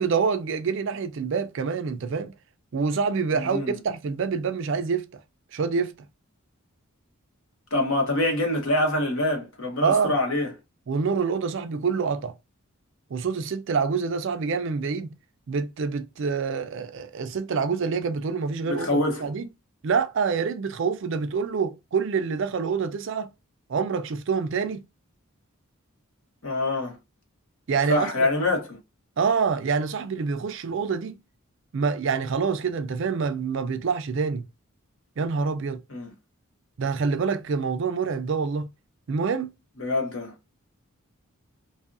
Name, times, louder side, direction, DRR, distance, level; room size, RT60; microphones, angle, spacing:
voice 1, 0.0-2.3 2.7-3.6 3.8-5.1 5.5-5.9 9.8-10.1 10.9-12.3 13.1-15.1 15.5-19.5 19.8-23.3 23.7-24.8 27.7-28.3 29.2-31.2 31.7-34.4 35.2-35.8 36.8-38.7 39.1-39.5, right 5 dB, 55° right, 0.4 m, -26 dB
voice 2, 3.3-3.8 7.7-10.5 18.6-19.2 26.4-27.0 27.9-28.8 35.9-36.1 39.8-40.3, left 2 dB, 75° left, 1.1 m, -25 dB
2.6 x 2.4 x 2.4 m
head